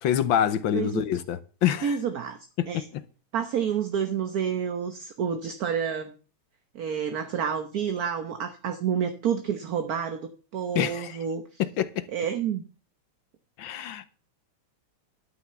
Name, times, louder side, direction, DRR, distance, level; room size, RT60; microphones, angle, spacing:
voice 1, 0.0-2.0 2.6-2.7 10.7-11.2 11.6-12.1 13.6-14.1, left 10 dB, 70° left, 1.4 m, -26 dB
voice 2, 0.7-1.0 1.8-2.4 2.7-2.9 3.3-6.1 6.7-11.6 12.1-12.6, right 7 dB, 50° right, 1.2 m, -29 dB
12.5 x 6.0 x 6.9 m
omnidirectional pair, 2.4 m